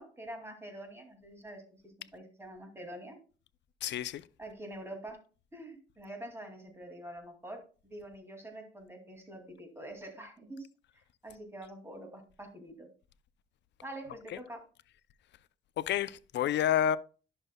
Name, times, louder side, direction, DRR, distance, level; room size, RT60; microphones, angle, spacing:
voice 1, 0.0-1.6 2.0-3.2 4.4-5.2 5.5-10.7 11.2-12.9 13.8-14.6, right 1 dB, 10° right, 2.4 m, -46 dB
voice 2, 3.8-4.2 14.3-14.4 15.8-17.0, left 10 dB, 65° left, 0.5 m, -29 dB
11.0 x 6.5 x 2.2 m
cardioid pair, 90°, 20 cm